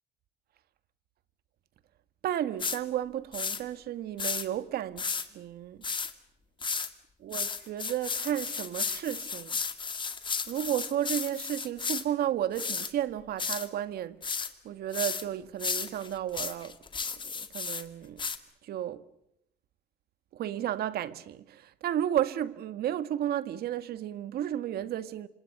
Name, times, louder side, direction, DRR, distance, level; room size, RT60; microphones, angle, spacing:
voice 1, 2.2-5.8 7.2-9.6 10.5-14.2 14.6-16.8 17.2-18.2 18.6-19.0 20.3-25.3, right 11 dB, 65° right, 1.6 m, -33 dB
sound 1, 2.6-2.8 3.3-3.6 4.2-4.4 5.0-5.3 5.8-6.1 6.6-6.9 7.3-12.0 12.5-12.9 13.4-13.7 14.2-14.5 14.9-15.2 15.6-17.8 18.2-18.4, left 5 dB, 30° left, 2.2 m, -33 dB
27.5 x 25.5 x 6.7 m
cardioid pair, 110°, 17 cm